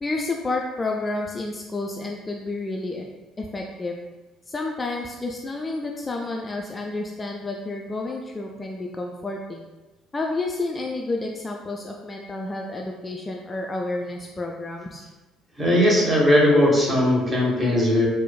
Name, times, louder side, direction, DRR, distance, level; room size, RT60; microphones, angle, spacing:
voice 1, 0.0-3.1 3.4-4.0 4.5-9.7 10.1-15.1, left 2 dB, 25° left, 0 dB, 0.3 m, -30 dB
voice 2, 15.6-18.1, left 1 dB, 25° right, -3 dB, 1.0 m, -18 dB
4.4 x 2.0 x 2.2 m, 1.1 s
figure-of-eight pair, 50°, 0 cm